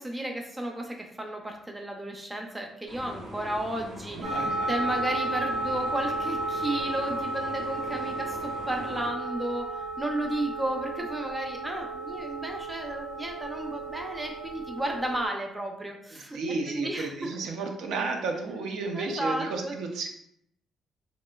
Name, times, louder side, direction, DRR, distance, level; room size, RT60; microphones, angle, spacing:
voice 1, 0.0-16.4 16.7-17.3 18.9-19.7, right 1 dB, 10° right, 2 dB, 0.4 m, -33 dB
sound 1, 2.9-9.1, left 1 dB, 60° right, 1.4 m, -43 dB
voice 2, 4.1-4.7 16.1-20.1, right 3 dB, 85° right, 3 dB, 0.4 m, -33 dB
sound 2, 4.2-15.3, right 2 dB, 40° right, 0.7 m, -33 dB
2.9 x 2.4 x 2.2 m, 0.72 s
cardioid pair, 140°, 0 cm